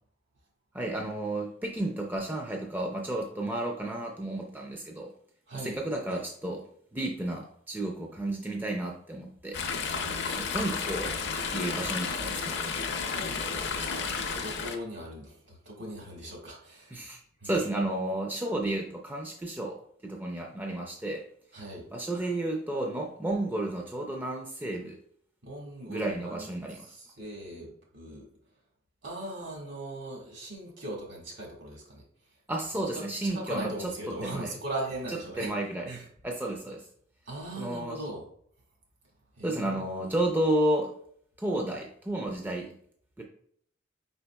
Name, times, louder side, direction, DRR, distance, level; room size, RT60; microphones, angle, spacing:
voice 1, 0.7-5.1 5.5-6.6 6.9-9.6 10.4-11.1 11.5-12.6 16.9-21.2 21.9-25.0 25.9-26.9 32.5-33.7 34.2-34.5 35.1-35.9 36.2-36.8 37.6-38.0 39.4-40.9 41.4-42.7 43.2-43.3, right 1 dB, 10° right, 1 dB, 0.4 m, -32 dB
voice 2, 5.5-5.8 9.9-10.7 13.1-17.0 17.4-17.6 21.5-21.9 25.4-26.5 26.8-28.3 29.0-32.0 32.9-35.5 35.9-36.1 37.3-38.3 39.4-39.9, right 1 dB, 65° right, -2 dB, 1.6 m, -39 dB
Chatter / Stream, 9.5-14.8, left 5 dB, 60° left, 0.5 m, -32 dB
4.8 x 3.9 x 2.3 m, 0.64 s
head